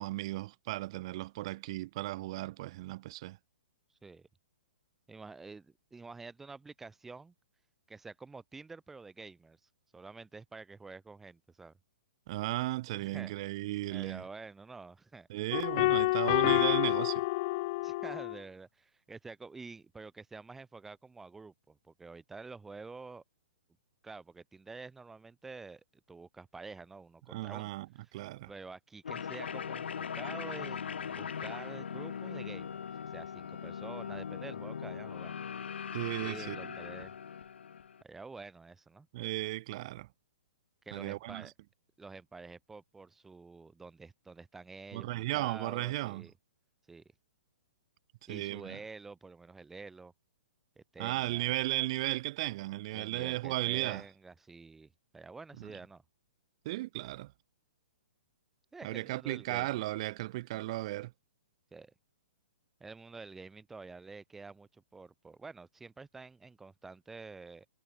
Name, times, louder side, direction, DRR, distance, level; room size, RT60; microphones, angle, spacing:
voice 1, 0.0-3.4 12.3-14.2 15.3-17.3 27.3-28.5 35.9-36.7 39.1-40.1 40.9-41.5 44.9-46.3 48.3-48.8 51.0-54.1 55.6-55.7 56.6-57.3 58.8-61.1, right 18 dB, 30° right, 3.2 m, -35 dB
voice 2, 5.1-7.3 7.9-9.6 9.9-11.7 13.0-13.3 13.9-15.3 17.8-23.2 24.0-27.7 28.5-32.8 33.1-35.3 36.2-37.1 38.0-39.1 40.8-41.5 42.0-46.3 46.9-47.0 48.3-50.1 50.7-51.5 52.9-56.0 58.7-59.9 61.7-61.9 62.8-67.7, right 4 dB, 5° right, 5.0 m, -48 dB
sound 1, 15.5-18.4, left 22 dB, 25° left, 1.1 m, -28 dB
sound 2, 29.0-38.0, left 7 dB, 80° left, 1.9 m, -40 dB
hypercardioid pair, 175°, 6 cm